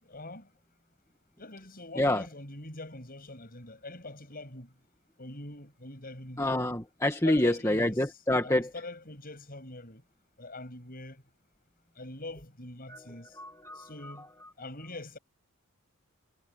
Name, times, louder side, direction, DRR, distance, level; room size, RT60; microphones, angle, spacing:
voice 1, 0.0-0.5 1.4-4.7 5.2-6.6 7.2-8.0 8.4-10.0 10.4-11.2 12.0-13.4 13.8-14.3 14.6-15.2, left 2 dB, 40° left, 7.8 m, -43 dB
voice 2, 6.4-8.7 12.9-14.3, left 1 dB, 15° left, 1.8 m, -28 dB
head